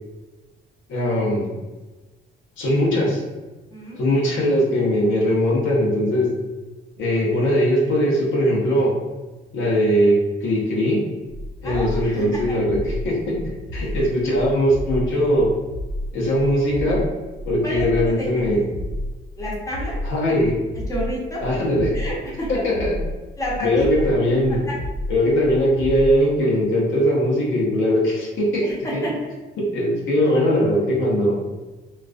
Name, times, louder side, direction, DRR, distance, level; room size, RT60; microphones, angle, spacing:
voice 1, 0.9-1.5 2.6-3.2 4.0-6.3 7.0-8.9 9.5-10.1 10.4-11.0 11.6-13.4 13.7-15.5 16.1-17.0 17.4-18.6 20.0-20.5 21.4-21.9 22.6-22.9 23.6-24.7 25.1-28.6 28.9-29.0 29.7-31.3, equal, 75° left, -5 dB, 0.7 m, -20 dB
voice 2, 3.7-4.1 11.6-12.7 13.8-14.0 17.6-18.3 19.4-20.0 20.9-21.4 21.9-22.5 23.4-23.9 24.7-24.8 28.6-29.3, equal, 15° left, -6 dB, 0.9 m, -30 dB
sound 1, 11.3-26.2, equal, 60° right, 0.7 m, -31 dB
2.3 x 2.2 x 2.4 m, 1.2 s
cardioid pair, 90°, 20 cm